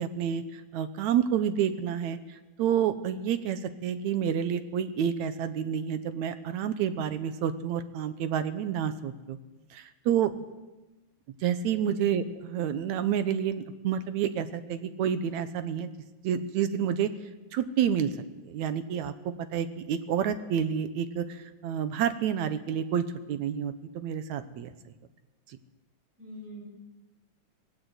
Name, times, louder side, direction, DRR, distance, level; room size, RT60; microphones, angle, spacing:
voice 1, 0.0-9.4 9.7-10.3 11.4-15.9 16.2-17.1 17.5-18.1 18.4-24.7 25.5-25.6, right 8 dB, 70° right, 11 dB, 2.1 m, -29 dB
voice 2, 11.8-12.1 26.2-26.7, left 1 dB, 25° right, -3 dB, 8.1 m, -42 dB
18.5 x 17.5 x 8.0 m, 1.1 s
omnidirectional pair, 3.6 m